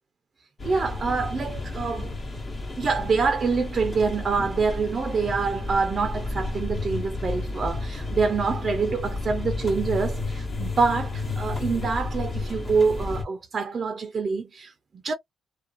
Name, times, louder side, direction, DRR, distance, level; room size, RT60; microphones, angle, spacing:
sound 1, 0.6-13.2, left 2 dB, 40° left, 1.0 m, -32 dB
voice 1, 0.6-2.1 2.8-15.1, right 4 dB, 40° right, 0.5 m, -26 dB
2.4 x 2.3 x 2.5 m
cardioid pair, 90°, 0 cm